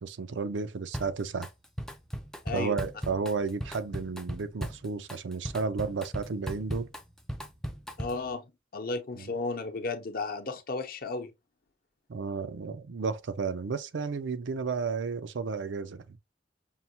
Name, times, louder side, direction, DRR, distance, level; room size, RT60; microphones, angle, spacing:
voice 1, 0.0-1.5 2.5-6.9 9.2-9.3 12.1-16.2, right 5 dB, 90° right, 0.5 m, -32 dB
Drum kit, 0.9-1.5 1.8-8.3, equal, 5° left, 0.4 m, -38 dB
voice 2, 2.4-2.8 8.0-8.4 8.7-11.3, left 3 dB, 55° left, 0.7 m, -34 dB
5.5 x 2.1 x 2.8 m
head